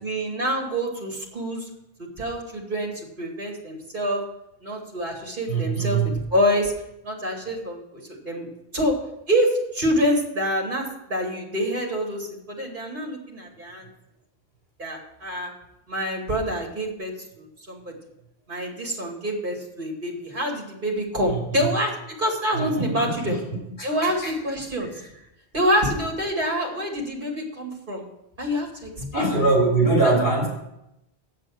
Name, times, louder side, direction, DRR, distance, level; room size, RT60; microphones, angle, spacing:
voice 1, 0.0-1.7 2.2-4.2 4.6-6.7 7.0-8.5 8.7-9.0 9.3-13.9 14.8-15.5 15.9-17.1 17.4-17.9 18.5-23.4 23.8-24.9 25.5-28.0 28.4-29.3 30.0-30.3, equal, 55° right, 0 dB, 2.6 m, -26 dB
voice 2, 5.5-6.1 21.3-21.4 22.5-23.4 24.0-24.3 24.8-24.9 29.1-30.5, right 3 dB, 70° left, -3 dB, 4.3 m, -22 dB
7.7 x 7.6 x 7.6 m, 0.86 s
omnidirectional pair, 1.1 m